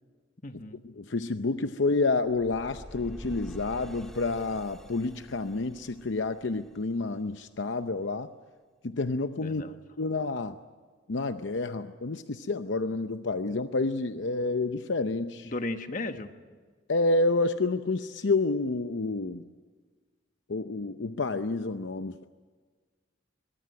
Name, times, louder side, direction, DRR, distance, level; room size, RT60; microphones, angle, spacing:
voice 1, 0.4-0.8 9.4-10.1 15.4-16.3, left 2 dB, 45° left, 8 dB, 1.3 m, -36 dB
voice 2, 1.0-8.3 8.8-9.6 10.0-10.5 11.1-15.5 16.9-19.4 20.5-22.2, left 3 dB, 70° left, 9 dB, 0.7 m, -29 dB
sound 1, 2.3-7.3, equal, ahead, 1.9 m, -47 dB
22.5 x 22.0 x 9.5 m, 1.5 s
head